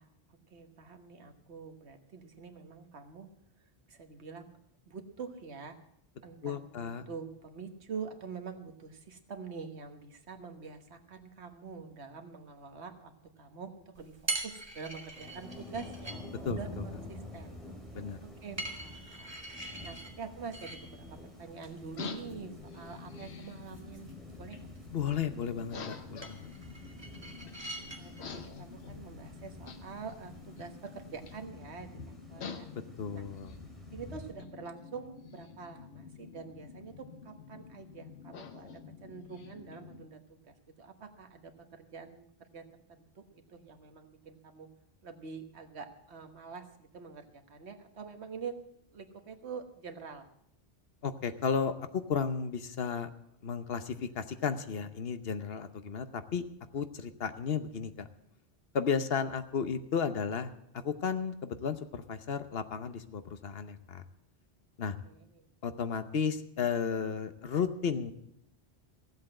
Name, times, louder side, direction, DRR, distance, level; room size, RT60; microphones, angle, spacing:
voice 1, 0.0-3.3 3.6-4.5 4.9-5.8 6.2-16.2 16.5-17.6 18.2-19.4 19.8-24.7 27.4-27.5 28.0-32.7 33.1-33.3 33.9-44.7 45.0-48.5 48.9-50.3 65.0-65.5, right 5 dB, 90° right, 6 dB, 1.5 m, -46 dB
voice 2, 6.4-7.1 16.4-16.6 17.9-18.2 24.9-26.5 32.7-33.6 51.0-53.1 53.4-56.4 56.7-58.1 58.7-64.0 64.8-65.0 65.6-68.1, left 6 dB, 65° left, 10 dB, 1.1 m, -33 dB
sound 1, 13.9-31.4, right 2 dB, 25° right, 1.6 m, -45 dB
Thunder / Rain, 15.1-34.3, left 1 dB, ahead, 2.8 m, -49 dB
sound 2, 21.9-40.0, left 6 dB, 85° left, 1.3 m, -48 dB
15.5 x 8.0 x 7.7 m, 0.75 s
omnidirectional pair, 1.1 m